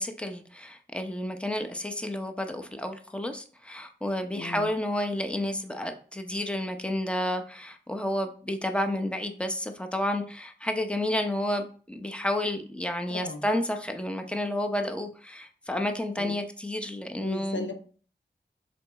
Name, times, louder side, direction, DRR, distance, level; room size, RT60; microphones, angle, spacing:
voice 1, 0.0-17.7, left 1 dB, 5° left, 1.0 m, -31 dB
voice 2, 4.4-4.7 13.1-13.4 16.2-16.3 17.2-17.7, left 2 dB, 80° left, 0.9 m, -36 dB
6.2 x 4.2 x 3.6 m
cardioid pair, 45°, 19 cm